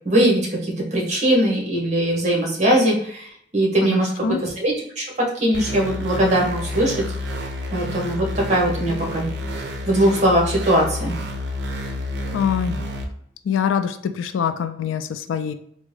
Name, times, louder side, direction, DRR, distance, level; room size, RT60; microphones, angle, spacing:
voice 1, 0.0-3.3 3.5-7.0 7.7-9.3 9.9-11.1, right 1 dB, 35° right, -2 dB, 0.9 m, -20 dB
voice 2, 3.9-4.4 12.3-12.8 13.5-15.5, left 7 dB, 85° left, 10 dB, 0.3 m, -24 dB
sound 1, 5.5-13.0, left 1 dB, 65° right, 0.5 m, -29 dB
3.5 x 2.1 x 3.2 m, 0.66 s
head